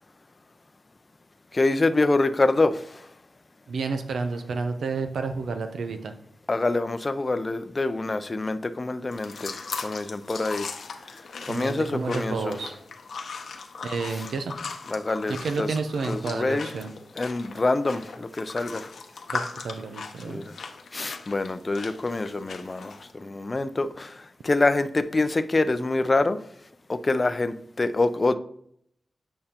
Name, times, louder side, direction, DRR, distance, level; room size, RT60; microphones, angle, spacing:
voice 1, 1.5-3.0 6.5-10.7 11.5-12.5 14.9-15.7 16.1-16.7 17.2-18.9 20.3-20.5 20.9-24.2 24.4-26.4 26.9-28.3, left 2 dB, 35° left, 11 dB, 0.5 m, -26 dB
voice 2, 3.7-6.1 11.4-12.7 13.8-14.5 15.3-16.9 19.3-20.4, right 4 dB, 90° right, 7 dB, 0.6 m, -30 dB
sound 1, 9.1-23.1, left 4 dB, 80° left, 0.8 m, -39 dB
8.7 x 5.4 x 2.9 m, 0.69 s
cardioid pair, 75°, 0 cm